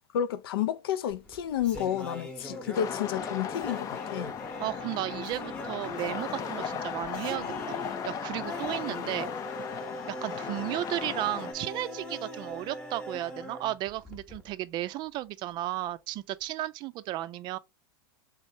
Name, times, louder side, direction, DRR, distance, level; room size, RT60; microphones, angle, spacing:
voice 1, 0.1-4.3, left 10 dB, 80° left, 0.5 m, -31 dB
sound 1, 1.1-14.5, left 1 dB, 10° left, 0.9 m, -41 dB
sound 2, 2.7-11.5, left 8 dB, 30° left, 0.5 m, -37 dB
voice 2, 4.6-9.3 10.1-17.6, right 15 dB, 40° right, 0.4 m, -34 dB
3.6 x 3.2 x 2.6 m
supercardioid pair, 130°, 12 cm